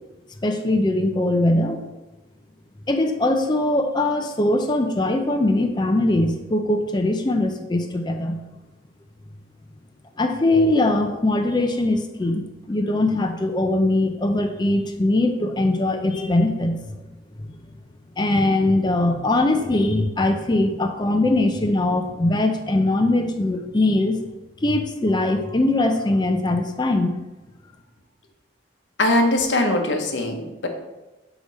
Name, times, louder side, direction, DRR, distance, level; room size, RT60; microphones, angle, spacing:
voice 1, 0.4-1.8 2.9-8.4 10.2-16.8 18.2-24.2 24.6-27.1, left 2 dB, 25° left, 5 dB, 0.4 m, -21 dB
voice 2, 29.0-30.7, left 1 dB, 75° left, 3 dB, 0.9 m, -21 dB
6.5 x 5.0 x 4.0 m, 1.1 s
head